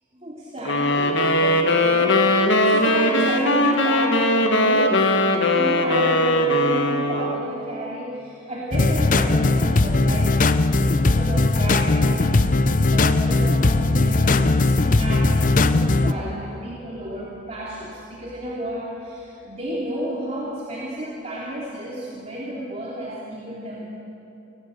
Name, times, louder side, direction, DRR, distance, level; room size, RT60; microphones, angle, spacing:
voice 1, 0.1-5.1 5.4-10.4 10.7-12.3 12.9-23.9, right 1 dB, 35° right, -6 dB, 2.9 m, -32 dB
sound 1, 0.7-7.5, left 1 dB, 70° left, 1.8 m, -19 dB
sound 2, 8.7-16.1, left 2 dB, 40° left, 0.7 m, -19 dB
29.5 x 16.5 x 6.6 m, 2.9 s
head